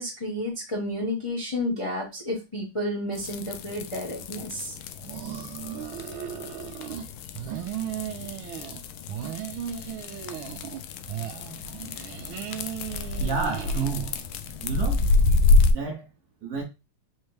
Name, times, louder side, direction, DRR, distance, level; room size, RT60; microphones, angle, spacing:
voice 1, 0.0-4.8, left 1 dB, 20° left, 0.8 m, -31 dB
sound 1, 3.1-15.7, left 3 dB, 85° left, 1.4 m, -28 dB
sound 2, 5.0-7.1 7.3-8.8 9.1-10.8 11.1-14.3, right 11 dB, 80° right, 1.4 m, -36 dB
voice 2, 13.2-14.2 14.6-15.0 15.7-16.1 16.4-16.6, right 5 dB, 60° right, 1.1 m, -30 dB
4.4 x 3.2 x 3.2 m
omnidirectional pair, 2.3 m